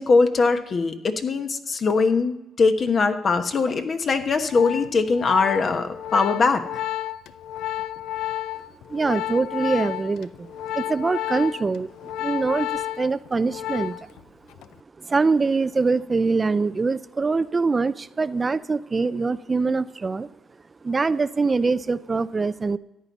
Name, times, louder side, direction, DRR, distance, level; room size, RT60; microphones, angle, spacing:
voice 1, 0.0-6.6, left 4 dB, 45° left, 7 dB, 1.1 m, -21 dB
Organ, 4.2-14.2 14.5-14.8, left 13 dB, 90° left, 0.4 m, -31 dB
voice 2, 8.9-11.9 12.2-14.1 15.0-20.3 20.8-22.8, right 4 dB, 30° right, 15 dB, 0.4 m, -24 dB
14.0 x 9.4 x 4.0 m, 0.96 s
cardioid pair, 90°, 0 cm